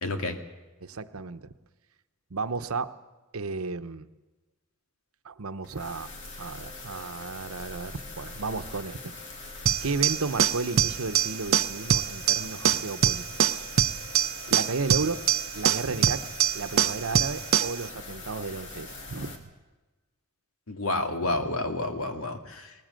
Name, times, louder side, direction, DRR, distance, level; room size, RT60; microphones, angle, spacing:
voice 1, 0.0-0.4 20.7-22.7, left 2 dB, 85° left, 6 dB, 2.2 m, -30 dB
voice 2, 0.8-1.5 2.3-2.9 3.3-4.1 5.2-6.1 6.4-9.1 9.8-13.2 13.5-13.7 14.5-15.2 15.5-16.3 16.5-19.4 21.2-21.5, right 4 dB, 85° right, 11 dB, 0.9 m, -33 dB
sound 1, 5.6-19.4, left 3 dB, 60° left, 2.9 m, -42 dB
sound 2, 9.7-17.8, right 9 dB, 70° right, 0.6 m, -25 dB
20.0 x 19.5 x 7.7 m, 1.2 s
head